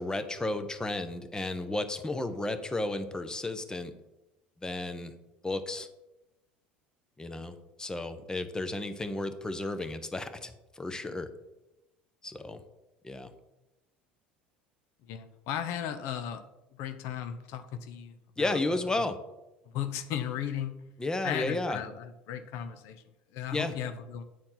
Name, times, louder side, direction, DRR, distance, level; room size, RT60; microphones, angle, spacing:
voice 1, 0.0-3.9 4.6-5.1 5.4-5.9 7.2-11.3 12.2-12.6 13.0-13.3 18.4-19.2 21.0-21.8 23.5-23.7, left 2 dB, 15° left, 10 dB, 0.9 m, -33 dB
voice 2, 15.1-16.4 16.7-18.6 19.7-20.8 21.2-23.0 23.3-24.2, left 9 dB, 65° left, 10 dB, 0.7 m, -36 dB
9.3 x 4.4 x 5.7 m, 0.96 s
hypercardioid pair, 80°, 5 cm